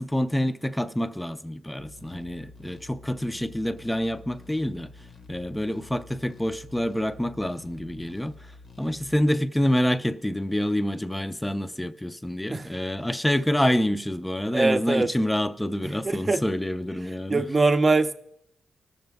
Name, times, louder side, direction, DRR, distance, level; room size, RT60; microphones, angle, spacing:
voice 1, 0.0-17.4, equal, 10° left, 0.5 m, -27 dB
sound 1, 1.8-9.3, left 3 dB, 60° left, 0.9 m, -49 dB
voice 2, 14.5-15.1 15.8-16.4 17.3-18.1, right 3 dB, 30° right, 0.6 m, -23 dB
19.0 x 6.7 x 3.5 m
cardioid pair, 85°, 0 cm